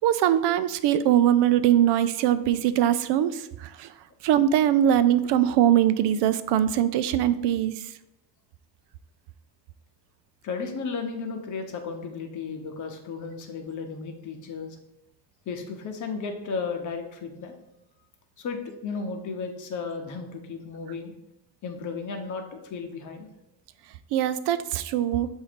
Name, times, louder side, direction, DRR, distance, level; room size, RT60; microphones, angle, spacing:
voice 1, 0.0-3.9 4.2-7.7 24.1-25.3, right 11 dB, 80° right, 13 dB, 0.5 m, -22 dB
voice 2, 10.4-14.8 15.5-17.5 18.4-21.1 21.6-23.3, left 5 dB, 45° left, 4 dB, 0.9 m, -34 dB
7.1 x 2.7 x 5.0 m, 0.89 s
cardioid pair, 155°, 41 cm